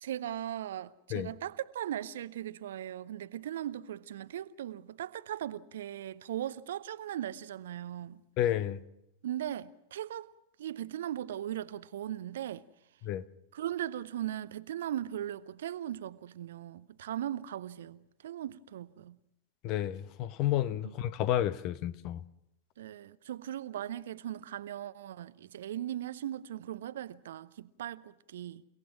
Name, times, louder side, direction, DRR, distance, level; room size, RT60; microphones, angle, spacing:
voice 1, 0.0-8.2 9.2-10.3 10.6-12.6 13.5-19.2 20.8-20.9 22.8-28.7, right 11 dB, 60° right, 0.7 m, -38 dB
voice 2, 8.4-8.8 13.0-13.2 19.6-22.2, left 12 dB, 40° left, 1.0 m, -31 dB
29.5 x 18.0 x 6.2 m
figure-of-eight pair, 90°, 0 cm